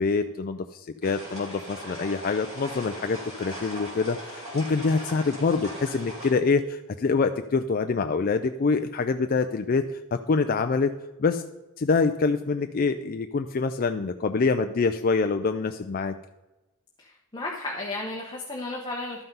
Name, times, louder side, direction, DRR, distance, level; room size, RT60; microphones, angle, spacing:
voice 1, 0.0-10.9 11.2-11.4 11.8-16.1, left 4 dB, 40° left, 7 dB, 0.4 m, -25 dB
sound 1, 1.0-6.3, equal, 30° right, 3.9 m, -39 dB
voice 2, 17.0-19.2, left 2 dB, 20° left, -2 dB, 1.1 m, -34 dB
12.0 x 5.7 x 5.4 m, 1.1 s
head